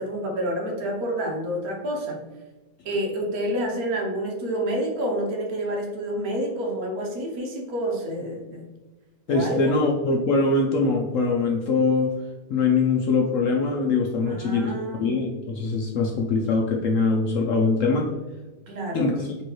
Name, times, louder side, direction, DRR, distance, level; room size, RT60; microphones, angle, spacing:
voice 1, 0.0-2.2 2.8-8.6 9.3-9.8 14.3-15.1 18.7-19.1, equal, 65° right, 1 dB, 1.2 m, -28 dB
voice 2, 9.3-12.1 12.5-14.7 15.0-18.1 18.9-19.3, left 3 dB, 70° left, 0 dB, 0.7 m, -22 dB
4.3 x 3.1 x 3.0 m, 1.2 s
omnidirectional pair, 1.8 m